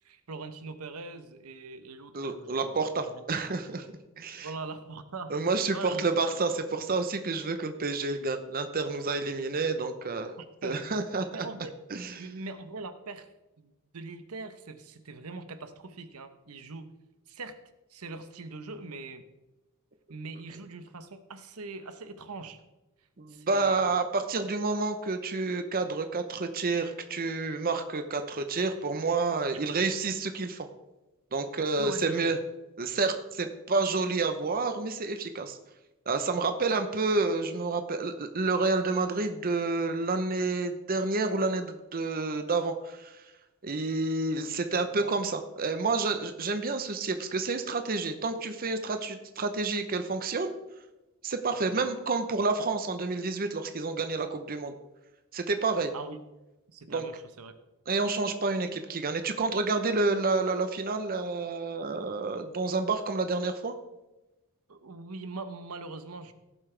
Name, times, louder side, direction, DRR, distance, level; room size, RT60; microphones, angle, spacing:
voice 1, 0.0-2.8 3.0-3.5 4.4-5.3 5.7-6.4 10.4-10.8 11.3-11.7 12.2-13.3 13.6-16.9 17.3-17.6 17.9-19.3 20.1-22.6 23.0-23.9 29.5-29.6 31.8-32.3 44.5-45.1 51.7-51.9 55.9-56.2 56.7-57.6 64.7-66.3, right 3 dB, 85° right, 10 dB, 0.9 m, -42 dB
voice 2, 2.1-4.5 5.3-10.4 10.6-11.3 11.9-12.1 23.2-30.7 31.3-32.4 32.8-35.6 36.1-43.2 43.6-50.5 51.2-54.7 55.3-55.9 56.9-57.0 57.9-63.7, right 3 dB, 40° right, 8 dB, 0.8 m, -29 dB
17.0 x 7.4 x 3.3 m, 1.0 s
head